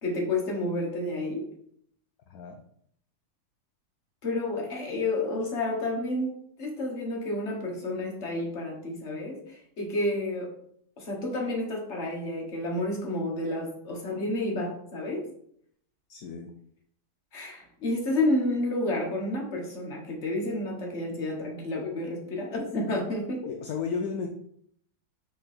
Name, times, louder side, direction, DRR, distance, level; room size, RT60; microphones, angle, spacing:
voice 1, 0.0-1.5 4.2-10.5 11.0-15.3 17.3-23.5, left 2 dB, 45° left, 0 dB, 1.7 m, -30 dB
voice 2, 2.3-2.6 16.1-16.5 23.5-24.3, left 5 dB, 70° left, 4 dB, 1.1 m, -33 dB
6.3 x 3.9 x 4.3 m, 0.67 s
omnidirectional pair, 1.7 m